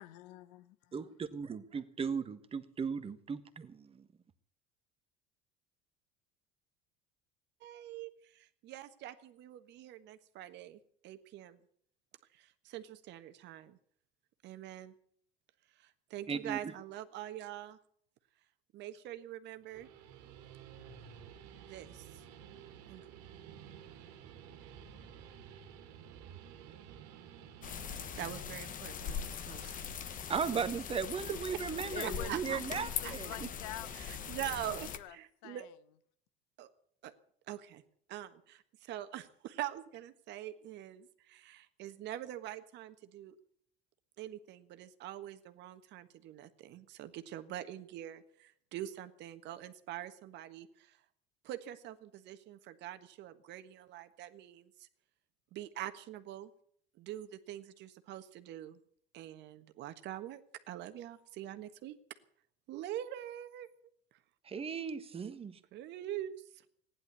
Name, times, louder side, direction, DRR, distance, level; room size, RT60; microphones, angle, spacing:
voice 1, 0.0-1.0 31.9-33.9 34.4-35.2 35.4-35.7, left 14 dB, 75° left, 1.1 m, -47 dB
voice 2, 0.9-3.9 16.3-16.7 30.3-33.5 64.5-65.6, right 6 dB, 30° right, 1.5 m, -37 dB
voice 3, 7.6-8.1 8.3-11.6 12.4-13.8 14.4-14.9 16.1-17.8 18.7-19.9 21.6-22.0 22.9-23.0 28.2-29.7 31.5-31.6 32.2-33.2 33.9-35.7 36.6-36.7 37.0-37.1 37.5-37.8 38.1-43.3 44.2-50.7 51.4-54.7 55.5-56.5 57.0-58.8 59.1-60.4 60.7-62.0 62.7-63.7 65.7-66.3, right 12 dB, 60° right, 1.5 m, -44 dB
Guitar, 19.6-28.3, right 8 dB, 80° right, 2.2 m, -52 dB
sound 1, 27.6-35.0, left 7 dB, 40° left, 1.4 m, -41 dB
15.5 x 11.0 x 8.3 m
supercardioid pair, 95°, 21 cm